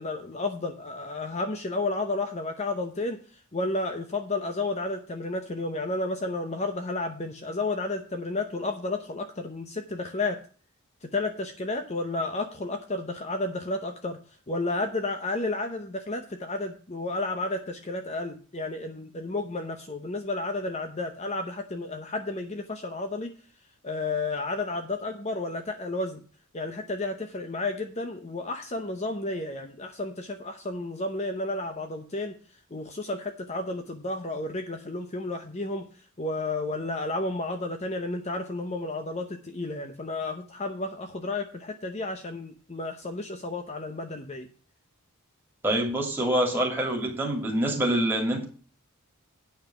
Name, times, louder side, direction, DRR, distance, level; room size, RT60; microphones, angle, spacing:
voice 1, 0.0-10.4 11.0-14.2 14.5-23.3 23.8-26.2 26.5-32.3 32.7-35.8 36.2-44.5, left 2 dB, 30° left, 6 dB, 0.8 m, -32 dB
voice 2, 45.6-48.4, right 1 dB, 10° right, 0 dB, 2.7 m, -26 dB
9.1 x 5.6 x 6.9 m, 0.40 s
head